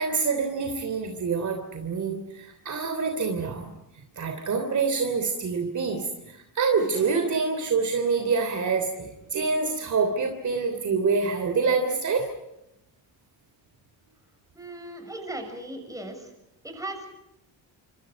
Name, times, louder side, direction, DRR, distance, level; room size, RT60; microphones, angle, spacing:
voice 1, 0.0-12.3, right 4 dB, 40° right, 5 dB, 3.2 m, -26 dB
voice 2, 14.5-16.3 16.6-17.1, right 1 dB, 5° right, 4 dB, 6.8 m, -37 dB
29.0 x 26.0 x 5.3 m, 0.86 s
cardioid pair, 135°, 44 cm